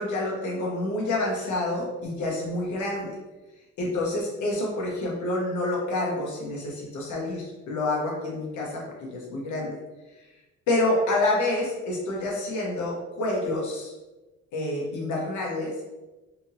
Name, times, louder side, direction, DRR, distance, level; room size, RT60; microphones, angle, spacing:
voice 1, 0.0-3.1 3.8-9.8 10.2-10.3 10.7-13.9 14.5-15.7, left 2 dB, 75° left, -3 dB, 1.0 m, -28 dB
2.9 x 2.6 x 2.7 m, 1.1 s
cardioid pair, 90°, 30 cm